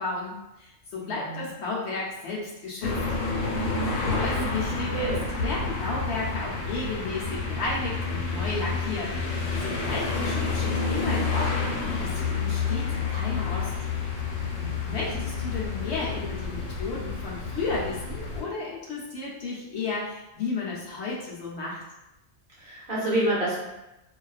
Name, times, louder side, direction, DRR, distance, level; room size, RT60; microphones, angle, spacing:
voice 1, 0.0-3.0 4.0-5.1 5.4-13.7 14.3-14.5 14.9-21.8, left 3 dB, 65° left, -5 dB, 0.8 m, -33 dB
voice 2, 1.0-1.5 4.3-4.6 4.9-5.3 14.6-15.2 22.6-23.6, right 1 dB, 55° right, -7 dB, 0.6 m, -29 dB
sound 1, 2.8-18.4, left 4 dB, 90° left, 1.0 m, -29 dB
2.4 x 2.3 x 2.3 m, 0.95 s
omnidirectional pair, 1.4 m